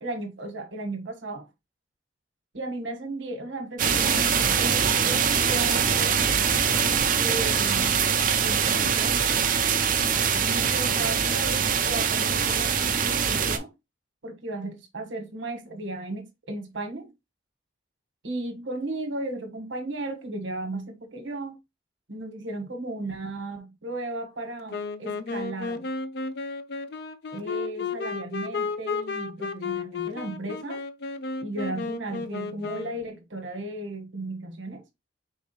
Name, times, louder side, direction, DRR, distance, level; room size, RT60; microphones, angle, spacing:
voice 1, 0.0-1.5 2.5-6.4 7.1-9.2 10.4-13.7 14.2-17.1 18.2-21.6 22.1-25.9 27.3-30.8 31.4-34.8, right 2 dB, 80° right, 1.2 m, -35 dB
sound 1, 3.8-13.6, right 7 dB, 45° right, 0.6 m, -23 dB
Wind instrument woodwind instrument, 24.7-33.1, left 4 dB, 60° left, 0.4 m, -33 dB
4.7 x 3.4 x 2.9 m
head